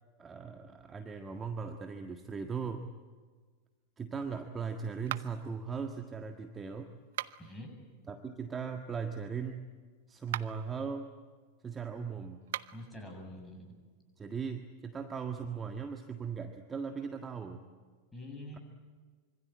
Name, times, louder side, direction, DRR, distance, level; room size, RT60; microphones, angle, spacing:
voice 1, 0.2-2.9 4.0-6.9 8.1-9.7 10.1-11.1 11.6-12.5 14.2-17.7 18.5-18.6, right 6 dB, 20° right, 5 dB, 1.7 m, -38 dB
sound 1, 5.1-5.6 7.0-7.6 10.2-10.7 12.4-12.9, right 13 dB, 55° right, 0.7 m, -39 dB
voice 2, 7.4-7.7 12.7-13.8 18.1-18.6, left 1 dB, 5° left, 2 dB, 8.0 m, -45 dB
26.0 x 25.5 x 8.8 m, 1.5 s
figure-of-eight pair, 90°, 0 cm